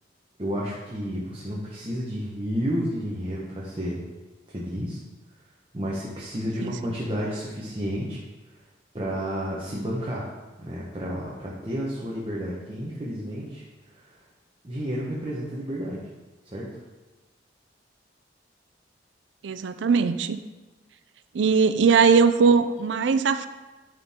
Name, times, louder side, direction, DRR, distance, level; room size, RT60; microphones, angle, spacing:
voice 1, 0.4-4.0 4.5-5.0 5.7-8.2 8.9-10.3 10.6-13.6 13.9-14.2 14.6-16.0 16.4-16.7, equal, 30° right, -5 dB, 1.1 m, -31 dB
voice 2, 19.4-20.4 21.3-23.5, right 5 dB, 75° right, 12 dB, 0.4 m, -20 dB
10.5 x 4.4 x 3.6 m, 1.2 s
head